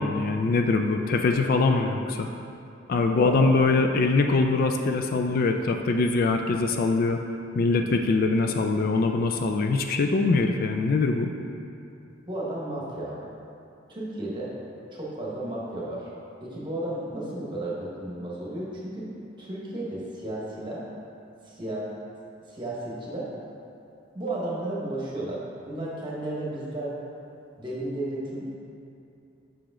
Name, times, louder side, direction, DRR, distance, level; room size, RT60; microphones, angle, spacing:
voice 1, 0.0-2.3 2.9-7.2 7.5-11.3, left 3 dB, 50° left, 4 dB, 0.3 m, -23 dB
voice 2, 3.1-3.5 7.9-8.0 12.3-13.2 13.9-14.5 14.9-16.1 16.4-19.1 19.4-20.8 21.4-21.8 22.5-23.3 24.1-25.4 25.6-26.9 27.6-28.5, right 1 dB, 25° right, -5 dB, 1.2 m, -33 dB
6.3 x 4.8 x 3.7 m, 2.7 s
head